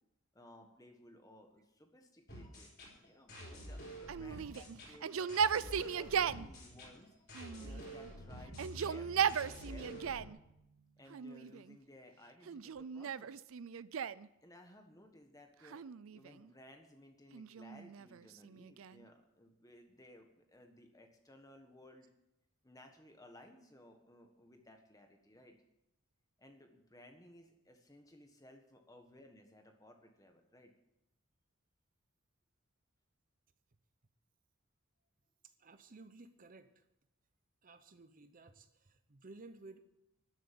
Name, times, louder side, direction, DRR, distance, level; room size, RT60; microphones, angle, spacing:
voice 1, 0.3-7.1 7.6-10.3 11.0-13.4 14.4-22.1 22.6-25.6 26.4-30.7, left 1 dB, 15° left, 4 dB, 1.6 m, -59 dB
sound 1, 2.3-10.3, equal, 50° left, 4.1 m, -49 dB
Yell, 4.1-6.5 7.3-8.1 8.5-10.4 11.1-11.8 12.5-14.3 15.6-16.5 17.3-19.1, right 7 dB, 65° right, 0.4 m, -37 dB
sound 2, 8.5-11.6, equal, 85° right, 1.8 m, -54 dB
voice 2, 35.4-36.9 37.6-39.8, right 3 dB, 40° right, 10 dB, 0.7 m, -56 dB
13.0 x 7.6 x 9.4 m, 0.87 s
head